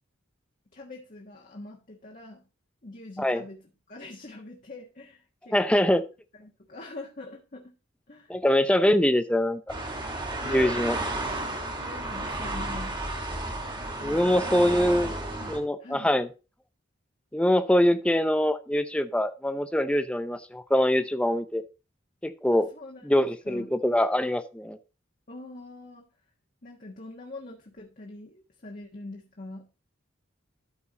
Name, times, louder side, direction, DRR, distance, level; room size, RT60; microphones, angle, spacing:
voice 1, 0.7-2.5 2.8-5.9 6.3-7.8 8.1-8.3 10.3-13.0 14.0-15.0 15.3-16.1 22.5-23.7 25.3-26.1 26.6-29.7, left 2 dB, 40° left, -1 dB, 1.4 m, -44 dB
voice 2, 5.5-6.0 8.3-9.6 10.5-11.0 14.0-15.1 15.5-16.3 17.3-21.6 22.2-22.7 23.0-24.8, left 1 dB, 5° left, 10 dB, 0.6 m, -23 dB
sound 1, 9.7-15.6, right 2 dB, 25° right, 1.9 m, -32 dB
12.5 x 4.5 x 4.0 m, 0.31 s
head